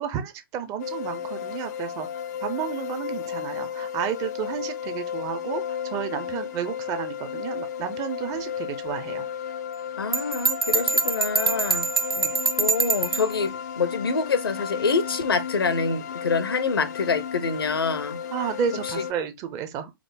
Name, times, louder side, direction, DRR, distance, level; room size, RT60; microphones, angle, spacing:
voice 1, 0.0-2.1 2.4-9.2 12.2-12.3 18.3-19.9, right 8 dB, 25° right, 0.6 m, -31 dB
sound 1, 0.8-19.1, left 8 dB, 45° left, 0.4 m, -34 dB
voice 2, 10.0-11.9 12.6-18.2, left 5 dB, 80° left, 0.7 m, -26 dB
Bell, 10.1-13.3, right 5 dB, 80° right, 0.6 m, -24 dB
4.8 x 2.1 x 3.4 m
hypercardioid pair, 125°, 12 cm